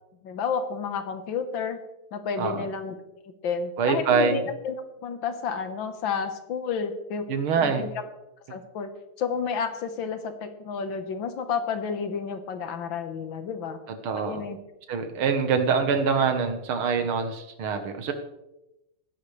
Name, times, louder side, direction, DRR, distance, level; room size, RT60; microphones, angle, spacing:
voice 1, 0.2-1.8 2.1-2.9 3.2-4.8 5.0-7.2 7.6-7.9 8.5-8.9 9.2-13.8 14.2-14.6, left 6 dB, 65° left, 8 dB, 1.9 m, -31 dB
voice 2, 2.4-2.7 3.8-4.4 7.3-7.8 14.0-14.4 14.9-18.1, right 5 dB, 75° right, 7 dB, 2.1 m, -24 dB
18.5 x 10.5 x 3.3 m, 0.91 s
omnidirectional pair, 2.3 m